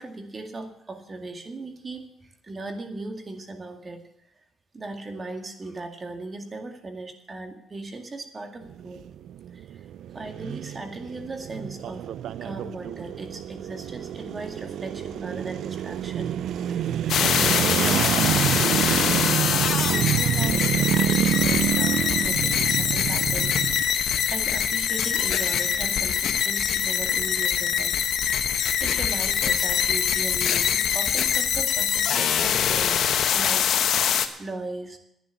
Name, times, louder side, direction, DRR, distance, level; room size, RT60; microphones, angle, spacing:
voice 1, 0.0-4.0 4.7-9.0 9.5-9.9 10.1-12.1 12.4-16.3 16.6-19.1 19.9-24.0 24.3-27.9 28.4-28.5 28.8-33.0 33.3-33.7 34.4-35.0, right 2 dB, 30° right, 5 dB, 2.1 m, -37 dB
sound 1, 8.6-23.8, right 10 dB, 75° right, 0.4 m, -27 dB
sound 2, 17.1-34.3, left 8 dB, 70° left, 1.1 m, -24 dB
11.0 x 9.8 x 8.3 m, 0.80 s
cardioid pair, 90°, 0 cm